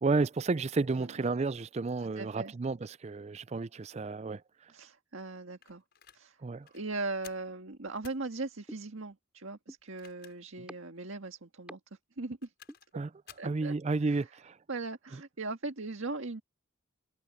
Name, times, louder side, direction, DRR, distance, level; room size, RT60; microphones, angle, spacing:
voice 1, 0.0-4.4 6.4-6.7 12.9-13.1 13.4-14.6, right 3 dB, 30° right, 0.4 m, -31 dB
voice 2, 0.9-1.3 2.0-2.5 4.7-5.8 6.1-6.4 6.7-11.8 12.2-12.5 13.4-13.7 14.0-14.2 14.7-16.4, right 3 dB, 70° right, 1.7 m, -39 dB
sound 1, 5.6-6.2 6.6-6.8 7.2-7.5 8.0-8.3 9.8-10.6 11.0-11.1 12.2-12.9 13.3-13.6, left 8 dB, 50° left, 6.6 m, -54 dB
sound 2, 8.7-8.8 9.7-9.8 10.7-10.8 11.7-11.8 12.7-12.8, equal, 5° right, 3.9 m, -44 dB
head